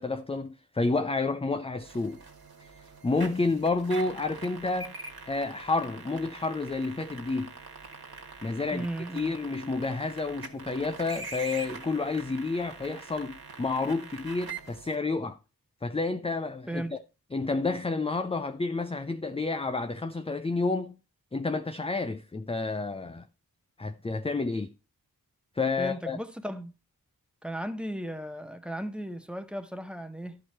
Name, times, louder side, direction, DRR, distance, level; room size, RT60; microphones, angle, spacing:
voice 1, 0.0-2.2 2.6-2.7 3.0-4.9 5.3-7.5 8.4-8.9 9.1-15.4 15.8-17.0 17.3-20.9 21.3-23.3 23.8-24.7 25.6-26.2, left 3 dB, 15° left, 0.4 m, -30 dB
sound 1, 1.8-15.0, right 4 dB, 75° right, 1.5 m, -44 dB
voice 2, 8.7-9.4 16.7-16.9 25.8-26.7 27.4-30.4, right 1 dB, 5° right, 0.8 m, -36 dB
12.0 x 4.7 x 4.3 m
wide cardioid pair, 65°, 37 cm